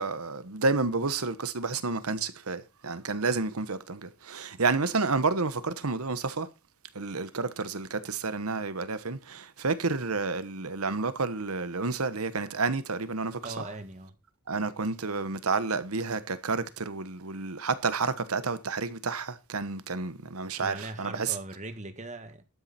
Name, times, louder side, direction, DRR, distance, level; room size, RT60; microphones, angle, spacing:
voice 1, 0.0-6.5 6.9-13.7 14.5-21.4, right 4 dB, 75° right, 1.2 m, -30 dB
voice 2, 13.4-14.1 20.6-22.4, right 2 dB, 35° right, 1.8 m, -40 dB
12.5 x 9.3 x 4.3 m
head